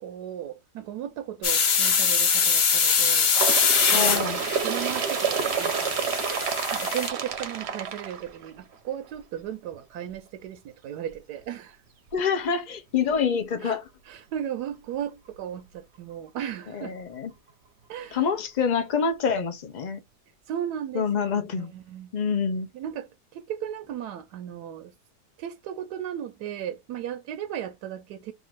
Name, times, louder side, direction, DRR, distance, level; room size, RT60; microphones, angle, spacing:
voice 1, 0.0-3.3 3.9-4.3 4.6-6.2 6.7-11.8 13.6-13.8 14.1-17.0 17.9-18.2 20.5-22.1 22.7-24.9 25.4-28.3, right 10 dB, 90° right, 1.2 m, -36 dB
sound 1, 1.4-7.1, left 6 dB, 50° left, 0.8 m, -23 dB
Bird, 3.3-8.7 9.6-9.7 10.1-10.2 11.1-11.2 12.1-12.2 13.1-13.2, right 7 dB, 55° right, 0.8 m, -29 dB
voice 2, 3.9-4.4 12.1-13.8 16.7-17.3 18.1-20.0 20.9-21.7 22.1-22.7, left 6 dB, 85° left, 0.4 m, -26 dB
3.6 x 2.5 x 4.5 m
omnidirectional pair, 1.7 m